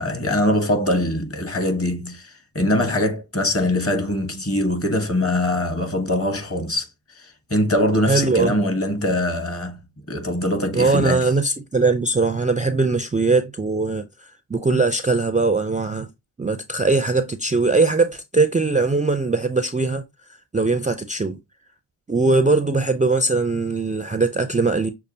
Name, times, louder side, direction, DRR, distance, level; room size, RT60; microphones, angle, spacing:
voice 1, 0.0-6.9 7.2-9.8 10.1-11.2, left 1 dB, 35° left, 1.4 m, -22 dB
voice 2, 8.1-8.6 10.7-16.1 16.4-20.0 20.5-21.4 22.1-24.9, right 3 dB, 20° right, 0.4 m, -20 dB
6.6 x 2.4 x 2.7 m
cardioid pair, 50°, 42 cm